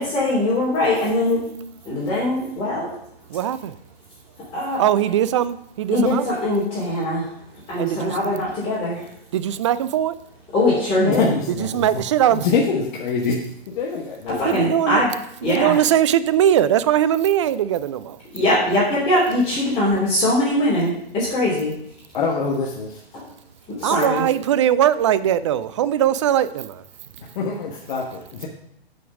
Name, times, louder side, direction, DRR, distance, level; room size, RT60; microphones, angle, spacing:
voice 1, 0.0-1.4 1.8-2.9 4.5-4.8 5.9-7.3 7.7-9.0 10.5-11.2 14.3-15.1 15.4-15.7 18.3-21.7 23.1-23.2 23.7-24.2, left 1 dB, 20° left, 3.1 m, -21 dB
voice 2, 3.3-3.7 4.8-6.3 7.8-8.5 9.3-10.2 11.6-12.5 14.4-15.0 15.4-18.2 23.8-26.8, right 10 dB, 30° right, 0.4 m, -20 dB
voice 3, 11.0-11.9 12.3-13.5 13.7-14.7 22.1-23.0 27.3-28.5, left 4 dB, 45° left, 1.4 m, -24 dB
8.5 x 5.3 x 6.1 m
hypercardioid pair, 135°, 31 cm